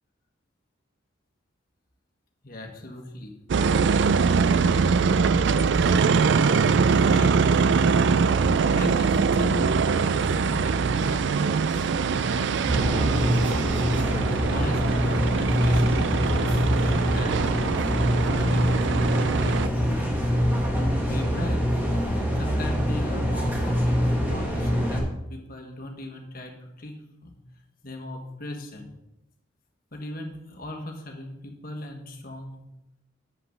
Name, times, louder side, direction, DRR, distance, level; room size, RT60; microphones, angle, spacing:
voice 1, 2.4-3.3 7.0-7.6 8.7-13.8 14.5-17.9 18.2-20.1 20.7-21.6 22.4-27.3 27.8-29.0 29.9-32.7, left 1 dB, 45° left, 3 dB, 1.5 m, -38 dB
sound 1, 3.5-19.7, right 5 dB, 60° right, 0.3 m, -23 dB
sound 2, 12.7-25.0, equal, 10° right, 1.5 m, -24 dB
7.7 x 5.9 x 6.5 m, 0.89 s
head